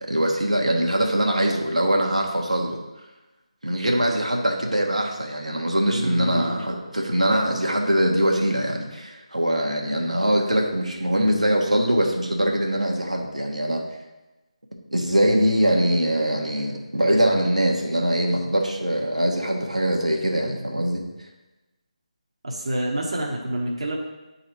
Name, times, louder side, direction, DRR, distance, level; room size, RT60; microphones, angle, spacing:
voice 1, 0.0-2.8 3.6-13.8 14.9-21.0, right 1 dB, 80° right, 0 dB, 1.2 m, -22 dB
voice 2, 5.9-6.6 22.4-24.0, right 1 dB, 50° right, -1 dB, 1.1 m, -28 dB
9.3 x 4.0 x 4.5 m, 1.1 s
figure-of-eight pair, 155°, 4 cm